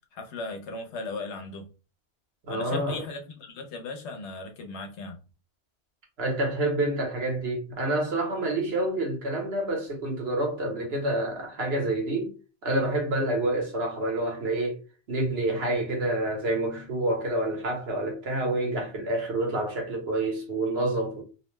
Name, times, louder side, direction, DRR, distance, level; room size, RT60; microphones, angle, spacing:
voice 1, 0.1-1.7 2.5-5.2, left 3 dB, 85° left, 1.0 m, -37 dB
voice 2, 2.4-3.0 6.2-12.3 12.6-14.8 15.1-21.2, right 1 dB, 65° right, 1.2 m, -28 dB
2.8 x 2.1 x 3.1 m
omnidirectional pair, 1.1 m